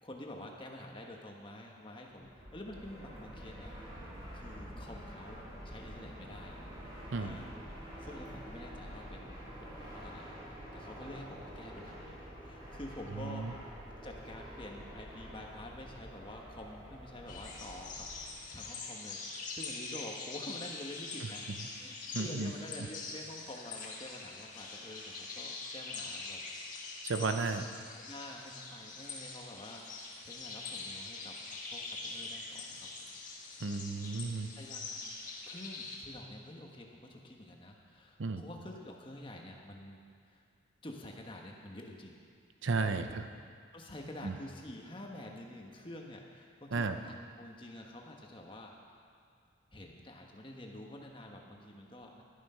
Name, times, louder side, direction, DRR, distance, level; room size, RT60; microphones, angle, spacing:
voice 1, 0.0-6.6 7.1-7.5 8.0-10.3 10.7-13.5 14.0-26.4 27.9-33.2 34.5-35.2 35.5-40.0 40.3-40.4 40.8-42.2 43.1-43.2 43.5-48.7 49.7-52.2, left 1 dB, 25° left, 1 dB, 1.3 m, -48 dB
Fixed-wing aircraft airplane, 2.1-18.5, equal, 20° right, 3.8 m, -48 dB
voice 2, 13.2-13.5 22.1-22.5 27.0-27.7 33.6-34.5 38.2-38.4 42.6-43.3 44.2-44.3 46.7-47.0, right 3 dB, 80° right, 8 dB, 0.7 m, -33 dB
sound 1, 17.3-36.0, left 3 dB, 40° left, 1.6 m, -44 dB
12.0 x 11.0 x 5.6 m, 2.3 s
head